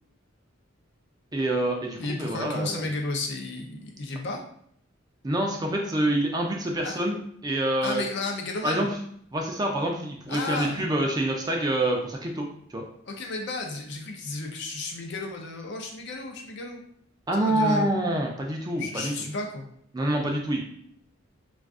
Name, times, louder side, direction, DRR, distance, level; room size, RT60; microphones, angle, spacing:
voice 1, 1.3-2.9 5.2-8.0 8.6-8.9 9.3-12.8 17.3-19.1 19.9-20.6, right 1 dB, 20° right, 1 dB, 0.4 m, -26 dB
voice 2, 2.0-4.4 6.8-7.0 7.8-8.9 10.3-10.8 13.1-16.8 17.3-17.9 18.8-19.7, left 2 dB, 55° left, 2 dB, 0.5 m, -33 dB
2.4 x 2.4 x 3.5 m, 0.66 s
head